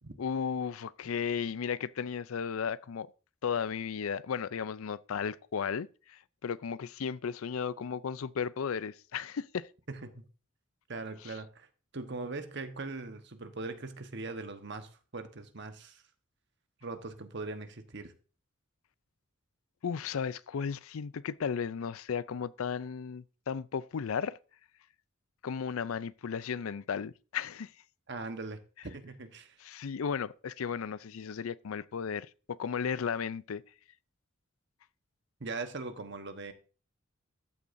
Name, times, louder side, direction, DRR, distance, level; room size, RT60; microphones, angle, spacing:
voice 1, 0.2-3.1 3.4-9.7 11.2-11.3 19.8-24.4 25.4-27.7 29.6-33.6, left 6 dB, 90° left, 0.5 m, -35 dB
voice 2, 9.9-10.3 10.9-11.7 11.9-16.0 16.8-18.1 28.1-29.6 35.4-36.5, right 3 dB, 55° right, 1.2 m, -40 dB
13.5 x 8.5 x 2.6 m
head